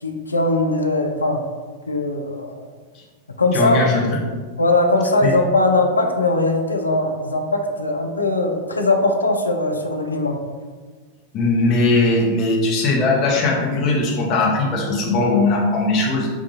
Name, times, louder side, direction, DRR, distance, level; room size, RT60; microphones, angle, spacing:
voice 1, 0.0-1.4 1.9-2.7 3.4-3.9 4.6-10.3, left 2 dB, 80° left, 3 dB, 0.4 m, -20 dB
voice 2, 3.5-4.2 5.2-5.3 11.3-16.3, left 2 dB, 40° left, -3 dB, 0.8 m, -19 dB
4.0 x 2.3 x 2.7 m, 1.5 s
figure-of-eight pair, 90°, 0 cm